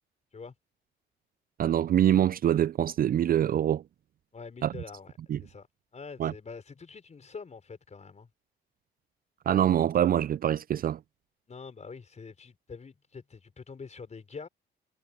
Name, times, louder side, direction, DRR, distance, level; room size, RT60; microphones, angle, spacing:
voice 1, 1.6-3.8 4.6-4.7 5.3-5.4 6.2-6.3 9.5-11.0, right 10 dB, 45° right, 0.4 m, -24 dB
voice 2, 4.3-5.7 5.9-8.3 11.5-14.5, left 5 dB, 35° left, 4.9 m, -45 dB
cardioid pair, 90°, 20 cm